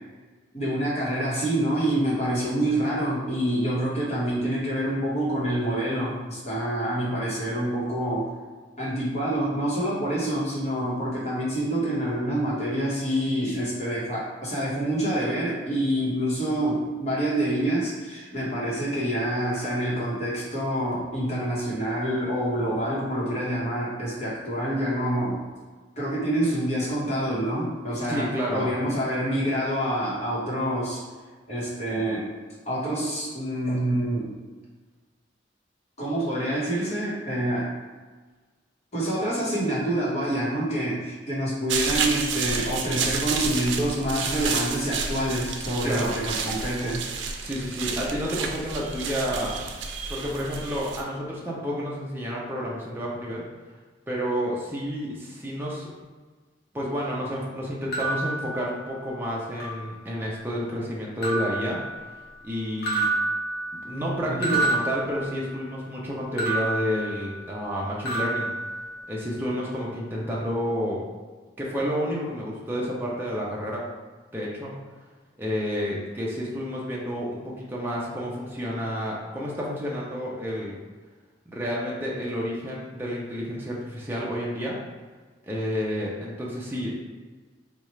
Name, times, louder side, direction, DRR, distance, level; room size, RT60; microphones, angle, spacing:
voice 1, 0.5-8.3 8.8-25.4 26.0-31.0 31.5-32.3 32.6-34.3 36.0-37.7 38.9-47.1 64.3-64.6, right 1 dB, 40° left, -7 dB, 1.1 m, -27 dB
voice 2, 28.1-28.7 45.8-46.1 47.4-49.6 50.1-53.4 54.1-55.9 56.7-61.8 62.4-63.1 63.8-68.5 69.1-71.0 71.6-73.8 74.3-74.8 75.4-80.8 81.5-84.8 85.4-86.9, equal, 10° right, -5 dB, 0.5 m, -30 dB
sound 1, 41.7-51.0, right 5 dB, 85° right, 0.4 m, -30 dB
sound 2, 57.9-59.2 59.6-60.4 61.2-62.5 62.8-65.8 66.4-67.8 68.0-69.4, right 2 dB, 60° left, 0.7 m, -30 dB
4.1 x 2.4 x 3.1 m, 1.4 s
head